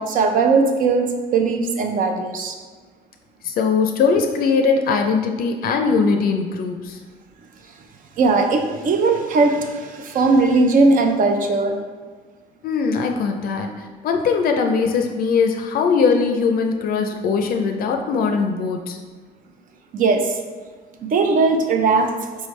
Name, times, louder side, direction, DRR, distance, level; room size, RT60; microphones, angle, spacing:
voice 1, 0.0-2.6 8.2-11.7 19.9-20.4 21.0-22.1, right 3 dB, 55° right, 4 dB, 0.6 m, -18 dB
voice 2, 3.4-7.0 12.6-19.0, left 5 dB, 60° left, 4 dB, 0.4 m, -20 dB
4.5 x 3.3 x 3.1 m, 1.5 s
cardioid pair, 110°, 17 cm